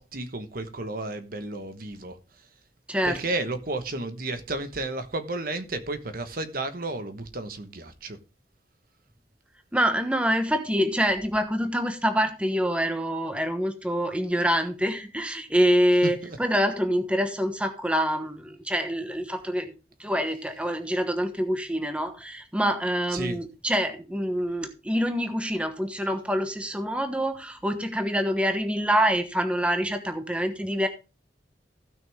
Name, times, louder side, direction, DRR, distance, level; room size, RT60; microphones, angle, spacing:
voice 1, 0.0-2.2 3.0-8.2 16.0-16.4 23.1-23.4, right 2 dB, 50° right, 1.2 m, -32 dB
voice 2, 2.9-3.2 9.7-19.7 20.0-30.9, equal, 5° right, 1.2 m, -26 dB
16.0 x 6.3 x 3.5 m
head